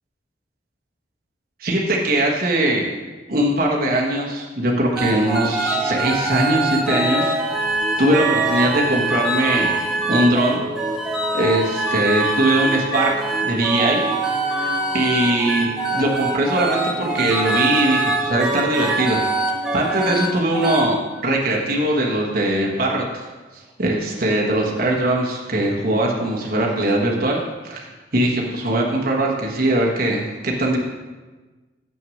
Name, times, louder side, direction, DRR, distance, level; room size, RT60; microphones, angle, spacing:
voice 1, 1.6-2.9 3.3-7.4 8.0-9.8 10.1-10.6 11.3-13.1 13.4-14.0 14.4-15.7 15.9-19.2 19.7-21.0 21.2-23.3 23.8-27.4 27.6-30.8, right 1 dB, 50° right, -2 dB, 1.4 m, -21 dB
sound 1, 5.0-20.3 20.5-20.8, right 2 dB, ahead, 1.3 m, -23 dB
7.9 x 6.1 x 6.4 m, 1.3 s
head